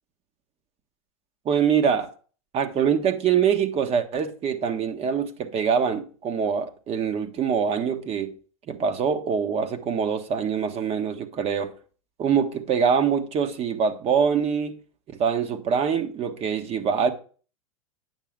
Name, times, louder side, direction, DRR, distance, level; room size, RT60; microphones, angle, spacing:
voice 1, 1.4-2.1 2.5-8.3 8.7-11.7 12.2-14.8 15.1-17.1, right 7 dB, 35° right, 1.3 m, -24 dB
9.2 x 6.8 x 3.7 m
hypercardioid pair, 105°, 18 cm